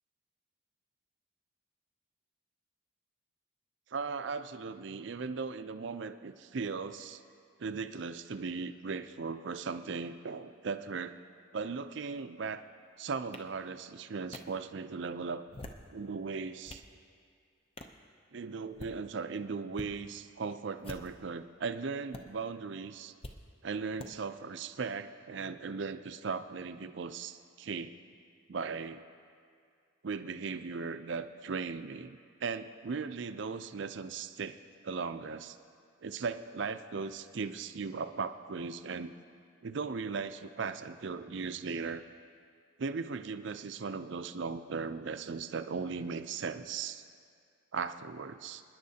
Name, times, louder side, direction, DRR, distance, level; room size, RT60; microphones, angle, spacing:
voice 1, 3.9-7.2 7.6-11.2 11.5-12.6 13.0-15.4 15.9-16.8 18.3-23.1 23.6-27.9 28.5-29.0 30.0-34.6 34.8-35.6 36.0-39.1 39.6-42.0 42.8-47.0 47.7-48.6, right 5 dB, 65° right, 10 dB, 0.5 m, -38 dB
sound 1, 13.3-13.4 14.3-14.4 15.4-15.9 16.4-16.9 17.8-18.0 18.6-19.0 19.7-19.9 20.8-21.3 22.1-22.2 23.2-23.4 24.0-24.1, left 1 dB, 30° left, 0.6 m, -45 dB
27.5 x 10.5 x 2.8 m, 2.2 s
head